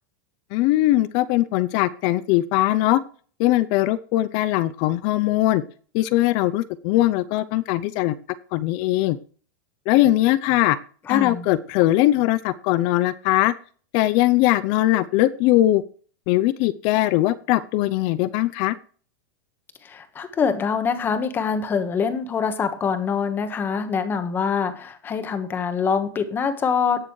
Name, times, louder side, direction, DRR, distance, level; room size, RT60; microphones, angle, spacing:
voice 1, 0.5-3.0 3.4-5.6 5.9-8.2 8.5-9.2 9.9-10.8 11.1-13.5 13.9-15.8 16.3-18.7, left 16 dB, 40° left, 15 dB, 0.6 m, -20 dB
voice 2, 11.1-11.5 19.8-27.0, left 6 dB, 20° left, 8 dB, 1.4 m, -24 dB
18.5 x 6.7 x 3.2 m, 0.43 s
supercardioid pair, 155°, 11 cm